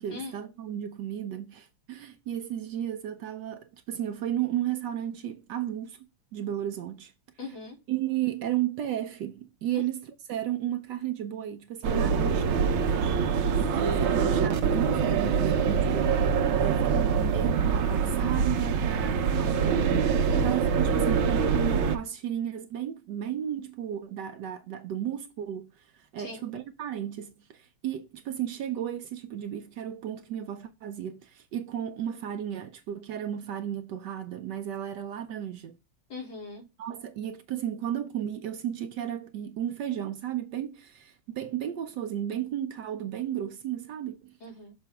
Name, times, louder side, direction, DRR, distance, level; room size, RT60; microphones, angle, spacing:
voice 1, 0.0-6.0 6.3-7.1 7.9-12.8 13.6-16.3 16.6-35.8 36.8-44.3, right 11 dB, 70° right, 1.1 m, -34 dB
voice 2, 7.4-7.8 9.7-9.8 20.3-20.6 26.2-26.4 36.1-36.7 44.4-44.7, left 4 dB, 75° left, 3.5 m, -40 dB
sound 1, 11.8-22.0, right 6 dB, 85° right, 1.7 m, -25 dB
6.9 x 4.3 x 3.4 m
omnidirectional pair, 2.2 m